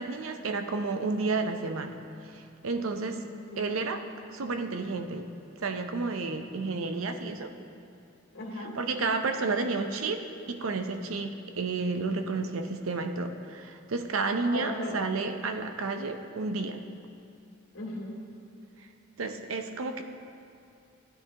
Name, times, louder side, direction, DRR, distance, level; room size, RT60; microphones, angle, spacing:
voice 1, 0.0-1.9 2.3-3.2 3.6-4.0 4.3-5.3 5.6-7.5 8.8-10.2 10.5-16.8 19.2-20.0, right 3 dB, 80° right, 7 dB, 0.6 m, -31 dB
voice 2, 3.1-3.7 8.3-8.7 14.4-15.0 17.7-18.1, left 1 dB, 80° left, -4 dB, 2.4 m, -38 dB
13.5 x 9.7 x 2.9 m, 2.5 s
head